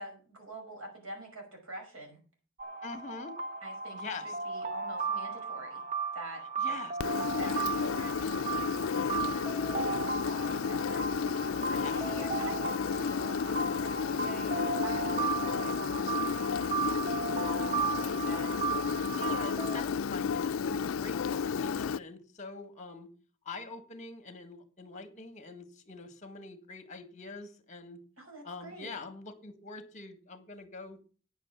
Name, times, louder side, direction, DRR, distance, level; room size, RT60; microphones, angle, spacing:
voice 1, 0.0-2.2 3.6-5.8 6.1-6.8 7.3-10.0 10.2-11.1 11.4-18.5 28.2-29.0, right 1 dB, 90° right, 2 dB, 5.5 m, -47 dB
sound 1, 2.6-19.8, right 5 dB, 35° right, 1.0 m, -35 dB
voice 2, 2.8-3.3 3.9-4.3 6.6-6.9 11.8-12.0 18.9-23.1 23.4-28.0 28.4-31.0, left 3 dB, 35° left, 9 dB, 1.6 m, -44 dB
Engine, 7.0-22.0, left 6 dB, 80° left, 0.4 m, -32 dB
9.6 x 7.4 x 7.0 m, 0.38 s
head